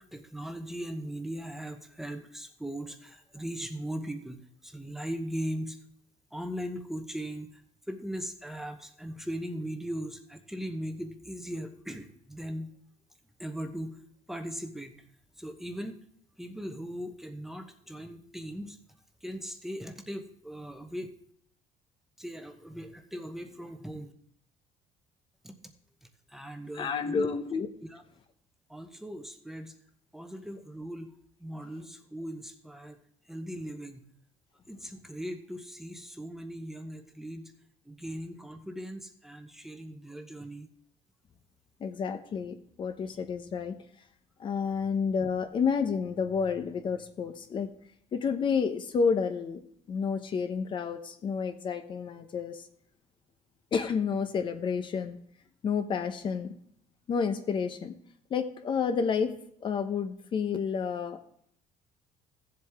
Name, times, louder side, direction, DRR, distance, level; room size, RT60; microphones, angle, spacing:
voice 1, 0.0-5.8 6.3-7.6 7.9-12.7 13.4-14.0 14.3-14.9 15.4-16.0 16.4-18.8 19.2-21.1 22.2-24.1 25.4-25.5 26.3-27.3 27.9-28.0 28.7-29.7 30.1-31.1 31.4-33.0 33.3-34.0 34.7-37.5 37.8-40.7, equal, 5° right, 5 dB, 0.9 m, -39 dB
voice 2, 26.7-27.7 41.8-43.8 44.4-47.7 48.1-49.6 49.9-52.6 53.7-55.2 55.6-56.6 57.1-57.9 58.3-59.3 59.6-61.2, left 6 dB, 40° left, 8 dB, 0.8 m, -30 dB
16.0 x 7.7 x 3.5 m, 0.66 s
cardioid pair, 145°, 13 cm